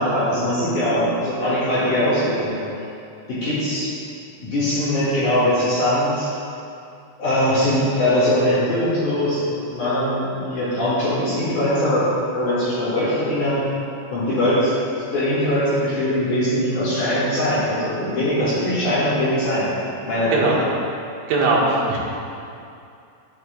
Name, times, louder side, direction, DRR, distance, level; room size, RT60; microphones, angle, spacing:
voice 1, 0.0-2.8 3.3-3.9 4.4-6.3 7.2-9.4 9.7-12.0 12.3-13.7 14.1-14.8 15.1-19.7 20.0-20.6, left 1 dB, 55° left, -11 dB, 2.4 m, -21 dB
voice 2, 21.3-22.0, right 2 dB, 80° right, -4 dB, 3.5 m, -19 dB
12.0 x 8.4 x 2.2 m, 2.6 s
omnidirectional pair, 5.4 m